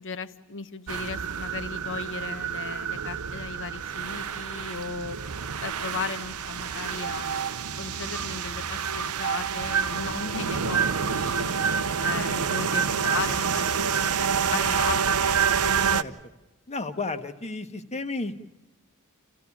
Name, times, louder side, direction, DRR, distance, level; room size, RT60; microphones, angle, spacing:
voice 1, 0.0-5.2 5.6-11.6 12.0-15.7, left 5 dB, 60° left, 11 dB, 1.2 m, -36 dB
sound 1, 0.9-16.0, right 7 dB, 85° right, 0.9 m, -27 dB
voice 2, 16.7-18.4, left 3 dB, 30° left, 8 dB, 1.5 m, -32 dB
28.0 x 15.5 x 8.5 m, 1.0 s
head